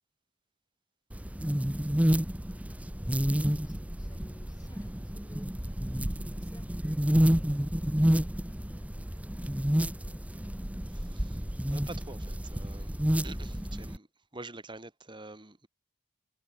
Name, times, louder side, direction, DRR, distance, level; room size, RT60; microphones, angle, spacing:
sound 1, 1.1-14.0, equal, 5° right, 0.7 m, -29 dB
voice 1, 1.4-1.7 3.0-9.5 9.9-10.5, left 1 dB, 20° left, 4.3 m, -60 dB
voice 2, 10.9-11.4 11.7-14.1 14.3-15.7, right 2 dB, 25° right, 2.3 m, -46 dB
head